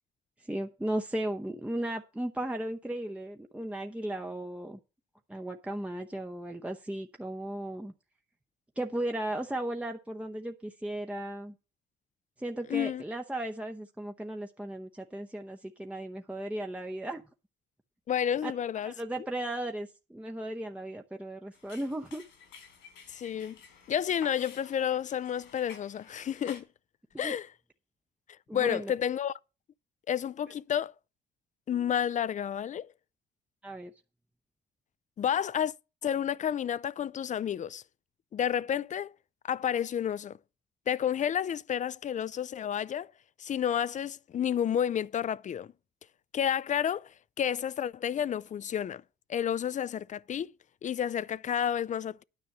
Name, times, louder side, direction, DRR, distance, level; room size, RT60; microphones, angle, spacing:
voice 1, 0.4-4.8 5.3-7.9 8.8-11.5 12.4-17.2 18.4-18.5 18.8-22.2 27.1-27.4 28.5-28.9 33.6-33.9, right 1 dB, 5° right, 0.8 m, -36 dB
voice 2, 12.7-13.0 18.1-18.9 23.1-23.6 23.9-26.6 27.2-27.5 28.5-29.3 30.1-30.9 31.7-32.9 35.2-35.7 36.0-37.8 38.3-39.1 39.4-40.4 40.9-43.1 43.4-45.7 46.3-49.0 49.3-50.5 50.8-52.2, left 9 dB, 40° left, 0.4 m, -30 dB
sound 1, 21.5-26.6, left 6 dB, 85° left, 3.3 m, -52 dB
9.7 x 5.3 x 7.2 m
cardioid pair, 80°, 19 cm